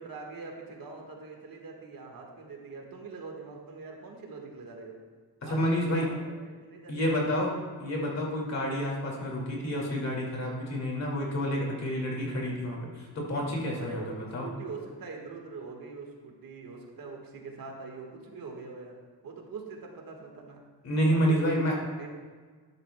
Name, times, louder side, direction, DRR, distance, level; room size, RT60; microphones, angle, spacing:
voice 1, 0.0-4.9 5.4-7.4 13.8-19.0 19.2-20.6 21.1-21.5 22.0-22.1, right 4 dB, 55° right, 1 dB, 1.6 m, -43 dB
voice 2, 5.4-6.1 6.9-14.5 20.8-21.8, equal, 40° left, -2 dB, 2.2 m, -29 dB
12.5 x 11.0 x 2.2 m, 1.5 s
wide cardioid pair, 180°, 40 cm